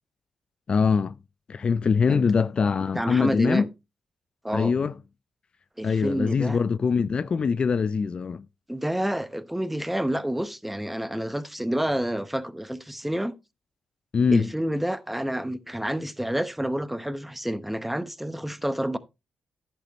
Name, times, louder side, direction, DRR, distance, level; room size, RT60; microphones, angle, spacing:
voice 1, 0.7-1.1 1.5-3.7 4.5-4.9 5.8-8.4 14.1-14.5, left 5 dB, 45° left, 0.4 m, -23 dB
voice 2, 2.9-3.7 4.4-4.7 5.8-6.6 8.7-13.3 14.3-19.0, right 1 dB, 5° right, 0.9 m, -29 dB
10.5 x 8.5 x 3.0 m
cardioid pair, 65°, 2 cm